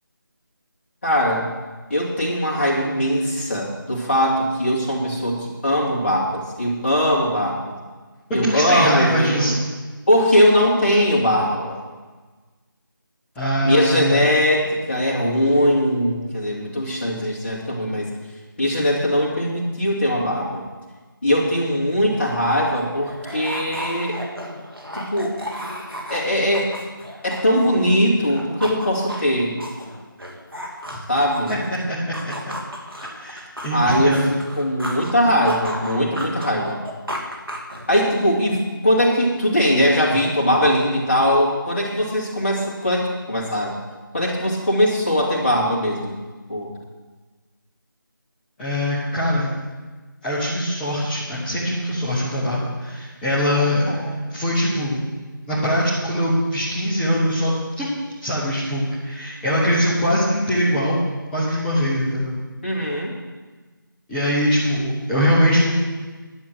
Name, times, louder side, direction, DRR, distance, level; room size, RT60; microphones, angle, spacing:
voice 1, 1.0-1.5 1.9-7.7 8.3-9.5 10.1-11.8 13.6-18.1 18.6-20.6 21.2-24.2 24.9-25.4 26.1-26.7 27.2-29.6 31.1-31.6 33.7-36.8 37.9-43.7 44.1-46.2 46.5-46.7 53.5-54.1 62.6-63.1, equal, 30° left, -5 dB, 2.9 m, -20 dB
voice 2, 8.3-9.6 13.3-14.2 30.9-31.0 31.7-32.0 32.2-32.5 33.0-34.3 48.6-49.5 50.2-55.0 55.5-57.9 58.2-61.0 61.3-62.4 64.1-65.7, equal, 5° left, -11 dB, 0.8 m, -22 dB
sound 1, 22.1-22.2 22.4-27.9 28.2-31.7 32.1-35.1 35.5-38.2, equal, 85° right, 2.6 m, -34 dB
11.0 x 7.3 x 8.2 m, 1.3 s
figure-of-eight pair, 165°, 12 cm